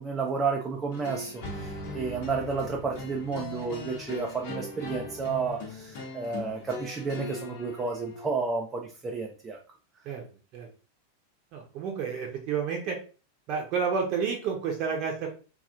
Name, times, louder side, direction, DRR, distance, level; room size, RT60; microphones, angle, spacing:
voice 1, 0.0-9.6, right 5 dB, 20° right, 0 dB, 0.5 m, -31 dB
sound 1, 0.9-8.3, left 3 dB, 50° left, 1.1 m, -39 dB
voice 2, 11.5-13.0 13.5-15.3, right 6 dB, 40° right, 1 dB, 0.9 m, -30 dB
3.9 x 3.0 x 2.4 m, 0.36 s
figure-of-eight pair, 90°, 0 cm